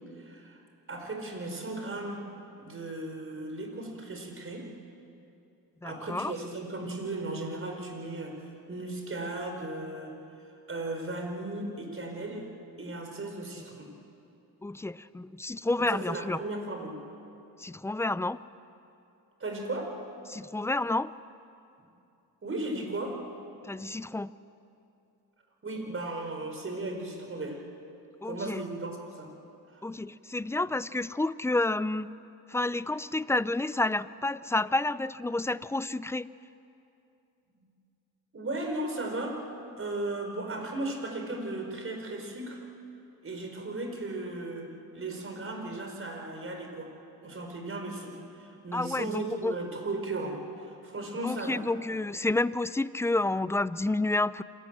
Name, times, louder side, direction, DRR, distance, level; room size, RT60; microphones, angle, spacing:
voice 1, 0.2-0.6 0.9-2.2 2.6-4.7 5.8-10.2 10.7-12.5 12.8-13.9 15.8-17.0 19.4-20.0 22.4-23.2 25.6-27.6 28.2-29.3 29.7-29.8 38.3-39.4 39.8-42.6 43.2-46.9 47.2-51.6, right 2 dB, 35° right, 3 dB, 5.0 m, -36 dB
voice 2, 5.8-6.3 13.6-13.7 14.6-16.4 17.6-18.4 20.3-21.1 23.6-24.3 28.2-28.6 29.8-32.1 32.5-36.3 48.7-49.6 51.2-54.4, left 2 dB, 5° left, 17 dB, 0.4 m, -30 dB
26.5 x 17.5 x 7.6 m, 2.7 s
cardioid pair, 80°, 39 cm